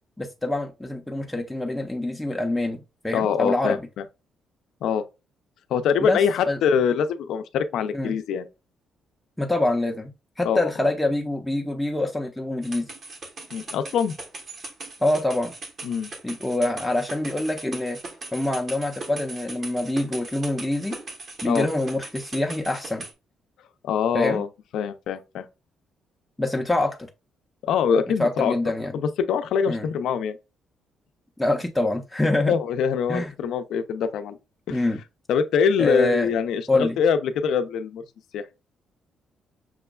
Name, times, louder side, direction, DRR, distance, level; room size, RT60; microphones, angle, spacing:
voice 1, 0.2-3.9 6.0-6.2 6.5-6.6 7.9-8.2 9.4-12.9 15.0-15.5 16.2-18.0 18.3-21.0 21.4-23.1 24.1-24.4 26.4-27.0 28.2-28.9 29.7-29.9 31.4-32.6 33.1-33.3 34.7-35.0 35.8-36.3 36.7-37.0, left 2 dB, 5° left, 0.5 m, -25 dB
voice 2, 3.1-3.8 4.8-5.0 5.7-8.5 10.4-10.9 13.5-14.1 15.8-16.1 21.4-21.7 23.8-24.5 24.7-25.5 27.6-28.5 28.9-30.4 32.3-34.4 34.7-34.8 35.3-38.0 38.3-38.5, left 7 dB, 80° left, 0.4 m, -24 dB
sound 1, 12.6-23.1, right 3 dB, 50° right, 0.9 m, -39 dB
6.0 x 2.2 x 2.2 m
cardioid pair, 90°, 0 cm